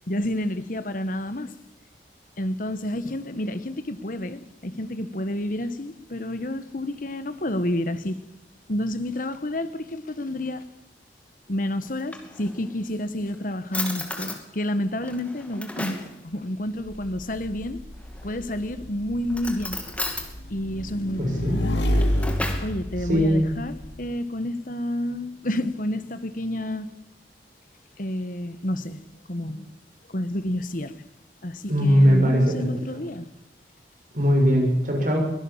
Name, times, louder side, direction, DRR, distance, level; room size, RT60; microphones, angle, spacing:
voice 1, 0.1-1.5 2.4-8.2 8.7-10.6 11.5-17.8 18.2-19.8 20.5-21.5 22.6-26.9 28.0-29.7 30.1-31.0 31.4-33.3, left 1 dB, 50° left, 1.3 m, -29 dB
Drawer open or close, 11.8-12.8 13.3-13.4 13.7-14.4 15.0-16.1 18.0-18.5 19.3-20.3 21.7-22.7, left 2 dB, 10° left, 2.6 m, -34 dB
Motorcycle / Engine, 16.9-24.0, equal, 85° left, 2.8 m, -29 dB
voice 2, 21.2-21.6 23.1-23.5 31.7-32.7 34.1-35.2, equal, 50° right, 6.8 m, -20 dB
23.0 x 17.0 x 7.3 m
head